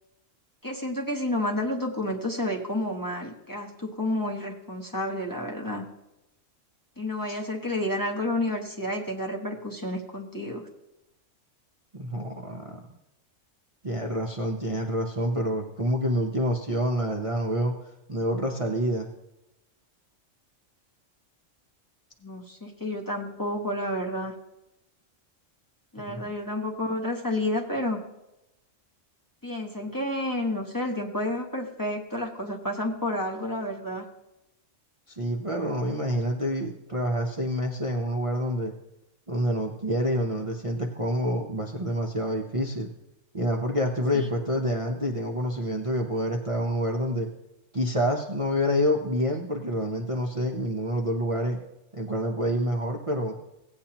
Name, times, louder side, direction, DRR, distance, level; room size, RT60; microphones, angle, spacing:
voice 1, 0.6-5.9 7.0-10.7 22.2-24.3 25.9-28.0 29.4-34.0 44.1-44.3, left 1 dB, 15° left, 0 dB, 1.0 m, -30 dB
voice 2, 11.9-12.8 13.8-17.7 18.1-19.1 26.0-26.2 35.1-38.7 39.3-42.9 43.3-47.3 47.7-51.6 51.9-53.4, equal, 30° right, 1 dB, 0.7 m, -27 dB
16.5 x 8.6 x 2.9 m, 0.92 s
omnidirectional pair, 1.3 m